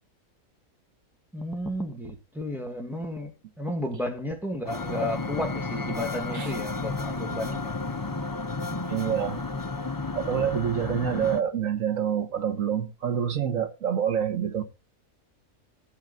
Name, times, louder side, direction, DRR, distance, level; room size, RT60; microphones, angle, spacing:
voice 1, 1.3-3.3 3.6-7.8, left 1 dB, ahead, 2.0 m, -32 dB
sound 1, 4.7-11.4, left 3 dB, 20° left, 0.6 m, -32 dB
voice 2, 8.9-9.4 10.2-14.6, right 8 dB, 70° right, 1.7 m, -27 dB
14.5 x 7.9 x 4.0 m
omnidirectional pair, 1.5 m